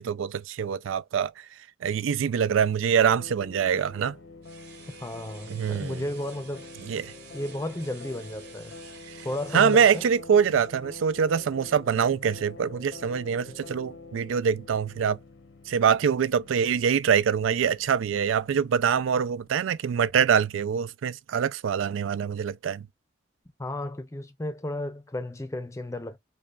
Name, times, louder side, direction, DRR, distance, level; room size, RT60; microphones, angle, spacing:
voice 1, 0.0-1.3 1.8-4.1 5.5-6.0 6.9-7.1 9.2-9.3 9.5-15.2 15.7-22.9, right 7 dB, 90° right, 0.4 m, -24 dB
sound 1, 3.0-19.8, left 3 dB, 75° left, 0.8 m, -47 dB
sound 2, 4.4-10.1, right 6 dB, 55° right, 1.4 m, -50 dB
voice 2, 5.0-6.7 7.3-8.8 9.2-10.1 23.6-26.2, left 1 dB, 15° left, 0.5 m, -33 dB
5.2 x 2.3 x 2.4 m
head